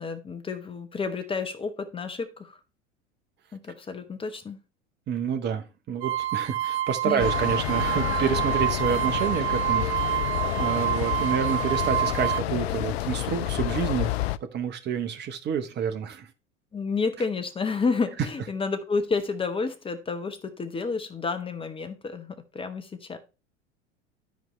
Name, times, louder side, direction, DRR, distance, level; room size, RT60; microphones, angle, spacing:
voice 1, 0.0-2.6 3.5-4.6 7.0-7.3 16.7-23.2, left 4 dB, 15° left, 1.1 m, -30 dB
voice 2, 5.1-14.1 14.4-16.3, right 7 dB, 30° right, 1.0 m, -29 dB
sound 1, 6.0-12.4, right 12 dB, 50° right, 0.6 m, -27 dB
sound 2, 7.2-14.4, left 14 dB, 60° left, 0.5 m, -29 dB
12.5 x 4.6 x 3.2 m
figure-of-eight pair, 80°, 36 cm